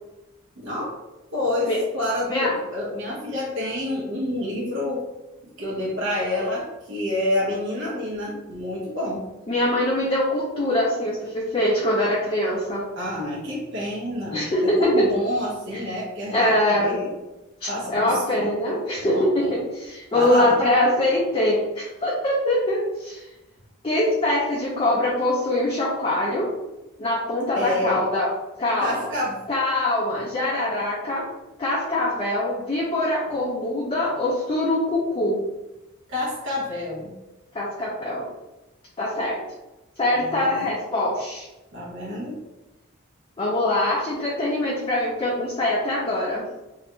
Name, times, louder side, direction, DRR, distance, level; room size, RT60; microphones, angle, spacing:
voice 1, 0.6-0.9 1.3-5.0 5.6-9.3 13.0-16.4 16.7-17.2 17.7-19.6 20.1-20.6 27.5-28.1 28.8-29.5 36.1-37.1 40.1-40.7 41.7-42.4, left 1 dB, 60° right, -6 dB, 0.7 m, -28 dB
voice 2, 9.5-12.9 14.3-15.1 16.3-17.0 17.6-23.3 23.8-26.5 27.0-28.3 28.6-29.0 29.5-31.2 31.6-35.4 37.5-38.2 39.0-39.4 40.0-41.5 43.4-46.5, left 1 dB, 25° left, -4 dB, 0.3 m, -23 dB
2.4 x 2.1 x 2.7 m, 1.0 s
head